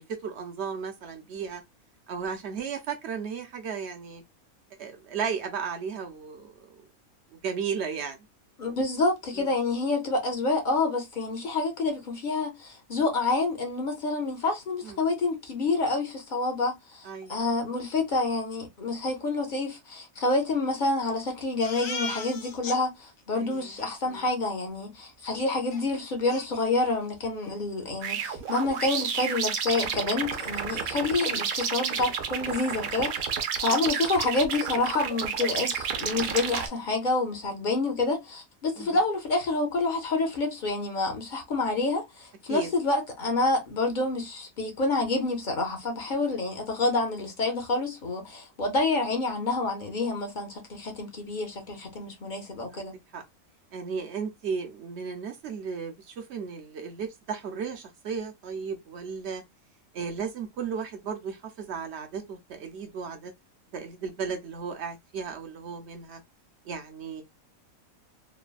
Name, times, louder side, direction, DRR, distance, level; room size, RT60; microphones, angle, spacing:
voice 1, 0.0-1.6 2.1-4.2 4.8-6.8 7.3-8.2 9.4-9.5 14.8-15.0 17.0-17.4 23.3-23.7 24.1-24.2 38.8-39.0 42.5-42.7 52.7-53.2 53.7-59.4 59.9-63.3 63.7-66.2 66.7-67.2, right 6 dB, 60° right, 0.8 m, -35 dB
voice 2, 8.6-53.0, left 3 dB, 45° left, 0.7 m, -28 dB
Crying sobbing, 21.6-22.8 23.2-23.3 23.5-23.9 25.7-25.8 26.3-27.1 27.4-27.6 27.9-28.0 28.4-29.1, left 3 dB, 75° left, 1.1 m, -39 dB
sound 1, 28.0-36.7, right 7 dB, 80° right, 1.1 m, -31 dB
3.2 x 2.1 x 2.2 m
omnidirectional pair, 1.5 m